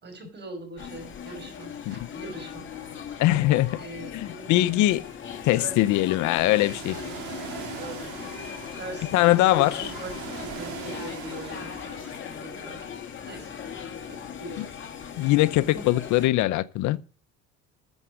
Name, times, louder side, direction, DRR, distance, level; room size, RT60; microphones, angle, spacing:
voice 1, 0.0-2.6 3.8-4.5 5.5-5.7 7.0-7.4 7.7-8.1 8.7-10.1 10.4-11.7 12.2-12.8 13.3-13.5 14.1-14.6 15.7-15.8, right 2 dB, 35° right, 5.6 m, -41 dB
sound 1, 0.8-16.3, left 8 dB, 40° left, 3.0 m, -39 dB
voice 2, 3.2-3.8 4.1-5.0 5.4-7.0 9.1-9.9 14.6-14.7 15.2-17.0, left 16 dB, 80° left, 0.8 m, -22 dB
Ocean, 6.3-12.2, right 9 dB, 75° right, 2.2 m, -41 dB
13.5 x 7.1 x 6.3 m
cardioid pair, 105°, 29 cm